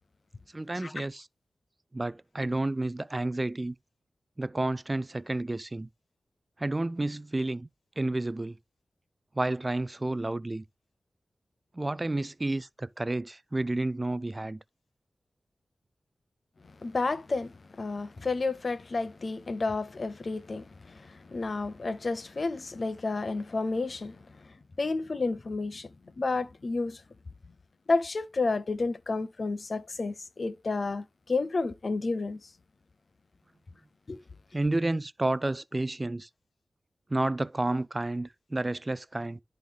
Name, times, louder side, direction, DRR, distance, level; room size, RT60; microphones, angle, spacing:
voice 1, 0.5-1.3 1.9-3.8 4.4-5.9 6.6-7.7 8.0-8.6 9.3-10.6 11.7-14.6 34.5-36.3 37.1-39.4, right 2 dB, 25° right, 0.4 m, -30 dB
voice 2, 16.8-24.2 24.8-25.9 26.2-27.0 27.9-32.4 34.1-34.2, left 3 dB, 55° left, 0.7 m, -31 dB
11.0 x 3.9 x 3.4 m
cardioid pair, 60°, 0 cm